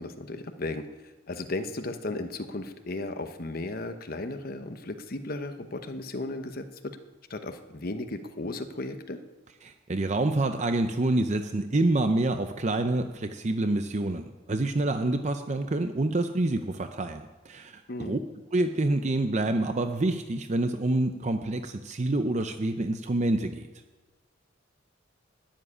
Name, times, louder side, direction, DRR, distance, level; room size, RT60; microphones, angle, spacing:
voice 1, 0.0-7.0 7.3-9.2 17.9-18.2, left 2 dB, 50° left, 8 dB, 0.9 m, -35 dB
voice 2, 9.6-18.2 18.5-23.7, right 2 dB, 35° right, 7 dB, 0.6 m, -27 dB
12.5 x 7.5 x 9.9 m, 1.3 s
head